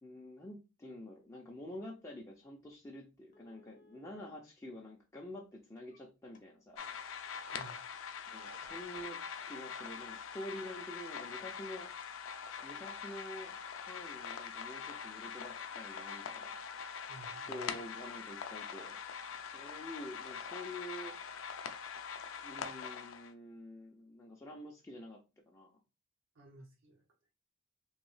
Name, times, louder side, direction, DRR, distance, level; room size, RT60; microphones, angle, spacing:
voice 1, 0.0-6.8 8.3-11.9 12.6-13.6 13.9-16.5 17.5-19.0 19.4-21.7 22.4-25.2 25.5-25.8, left 1 dB, 15° left, 0.4 m, -48 dB
sound 1, 2.7-2.8 3.3-4.3 5.1-6.0 6.3-6.7 7.8-7.9 8.5-9.2, left 3 dB, 40° left, 0.8 m, -63 dB
sound 2, 6.8-23.3, left 7 dB, 90° left, 0.4 m, -43 dB
voice 2, 17.1-17.7 26.3-27.1, right 2 dB, 70° right, 0.7 m, -54 dB
3.0 x 2.7 x 3.1 m
head